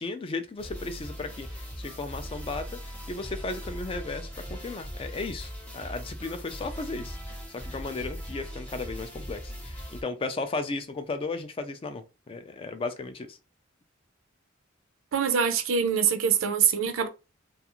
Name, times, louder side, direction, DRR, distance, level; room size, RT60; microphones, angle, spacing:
voice 1, 0.0-13.4, left 3 dB, 25° left, 0.3 m, -35 dB
sound 1, 0.6-10.0, equal, 5° left, 0.7 m, -39 dB
voice 2, 15.1-17.1, right 7 dB, 75° right, 0.4 m, -24 dB
2.4 x 2.3 x 2.9 m
head